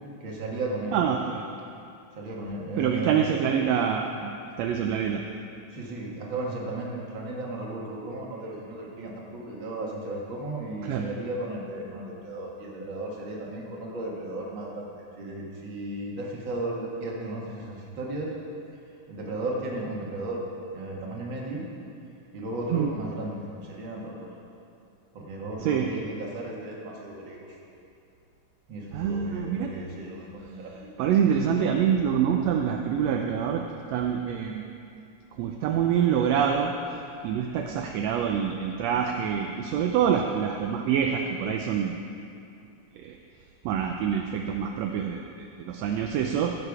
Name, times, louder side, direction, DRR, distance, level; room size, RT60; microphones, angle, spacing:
voice 1, 0.2-0.9 2.1-3.4 5.7-18.3 19.1-20.4 20.7-21.6 22.3-24.3 25.1-27.6 28.7-30.9, right 2 dB, 45° right, -3 dB, 2.1 m, -35 dB
voice 2, 0.9-1.5 2.8-4.3 4.6-5.2 10.8-11.1 22.7-22.9 25.6-25.9 28.9-29.7 31.0-33.6 33.9-34.7 35.4-36.7 37.2-41.9 42.9-43.2 43.6-46.5, right 8 dB, 80° right, 3 dB, 1.6 m, -26 dB
15.5 x 6.9 x 4.9 m, 2.5 s
omnidirectional pair, 3.5 m